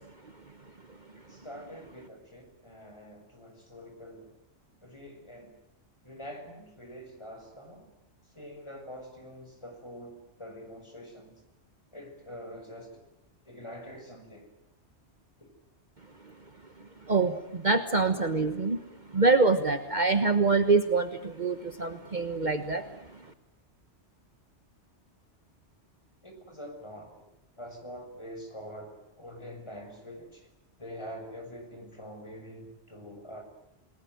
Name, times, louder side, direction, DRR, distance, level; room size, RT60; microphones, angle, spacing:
voice 1, 1.3-4.3 4.8-5.6 6.0-7.9 8.3-11.4 11.9-13.0 13.5-14.5 26.2-27.1 27.6-30.5 30.8-33.4, equal, 25° left, 4 dB, 6.4 m, -45 dB
voice 2, 17.1-18.8 19.1-22.8, right 3 dB, 40° right, 8 dB, 1.4 m, -25 dB
29.5 x 20.0 x 9.3 m, 0.84 s
omnidirectional pair, 1.2 m